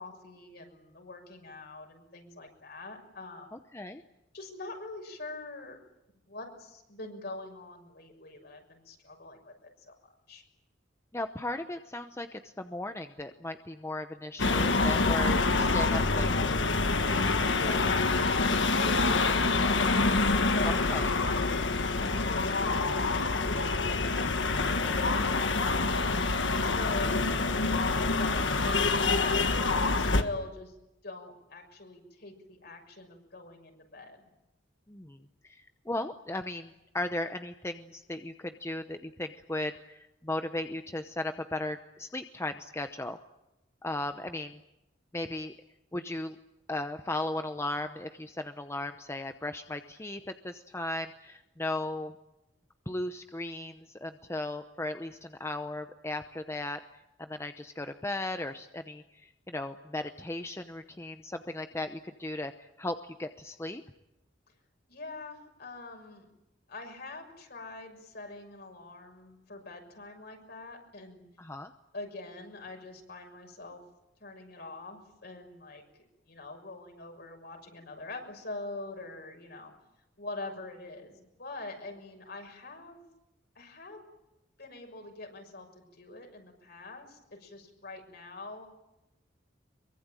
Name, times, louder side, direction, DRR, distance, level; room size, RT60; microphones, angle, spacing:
voice 1, 0.0-3.5 4.3-5.8 6.3-10.0 10.3-10.4 17.1-20.1 20.4-20.8 21.3-26.3 26.6-27.6 28.1-30.8 31.0-34.3 64.9-66.3 66.7-71.2 71.9-73.8 74.2-75.8 76.2-79.7 80.2-83.0 83.5-84.1 84.6-88.7, left 2 dB, 60° left, 3 dB, 6.4 m, -43 dB
voice 2, 3.5-4.0 11.1-16.5 20.6-21.1 34.9-35.2 35.5-43.2 43.8-44.6 45.1-45.5 45.9-46.4 46.7-52.2 52.9-56.8 57.2-63.8 71.4-71.7, left 2 dB, 15° left, 8 dB, 0.9 m, -36 dB
sound 1, 14.4-30.2, left 3 dB, 75° left, 1.5 m, -26 dB
23.5 x 23.5 x 9.1 m, 0.91 s
head